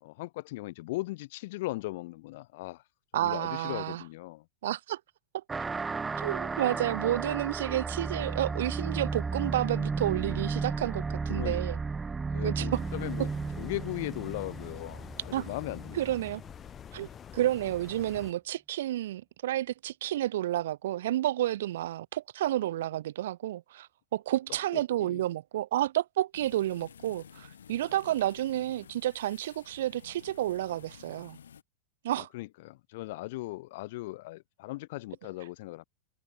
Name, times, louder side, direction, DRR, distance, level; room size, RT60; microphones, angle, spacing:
voice 1, 0.0-2.8 3.1-4.4 11.3-11.6 12.3-13.3 13.6-16.0 25.0-25.2 32.2-35.8, left 19 dB, 50° left, 0.6 m, -38 dB
voice 2, 3.1-4.0 4.6-5.0 6.2-11.8 12.4-12.8 15.3-15.5 15.9-16.4 16.9-31.4 32.0-32.3, right 13 dB, 55° right, 0.6 m, -30 dB
sound 1, 5.5-16.5, right 4 dB, 15° right, 1.9 m, -34 dB
sound 2, 12.7-18.3, left 8 dB, 25° left, 4.4 m, -47 dB
sound 3, 26.3-31.6, left 8 dB, 65° left, 5.1 m, -52 dB
figure-of-eight pair, 90°, 0 cm